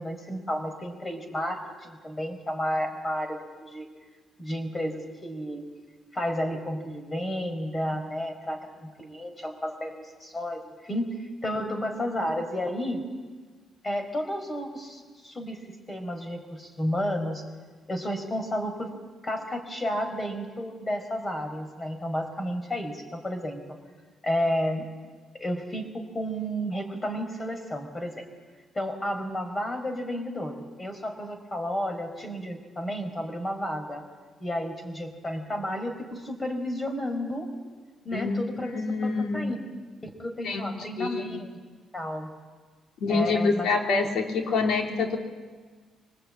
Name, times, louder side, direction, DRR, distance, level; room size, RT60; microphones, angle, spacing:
voice 1, 0.0-3.9 4.4-5.6 6.1-13.0 13.8-17.4 17.9-18.9 19.2-23.8 24.2-24.8 25.4-28.2 28.7-34.0 34.4-37.5 38.0-39.6 40.0-41.6 41.9-42.3 43.1-43.7, equal, 25° left, 7 dB, 4.6 m, -32 dB
voice 2, 38.1-39.5 40.4-41.4 43.0-45.2, left 4 dB, 75° left, 3 dB, 3.3 m, -27 dB
24.5 x 19.5 x 8.8 m, 1.5 s
cardioid pair, 90°, 0 cm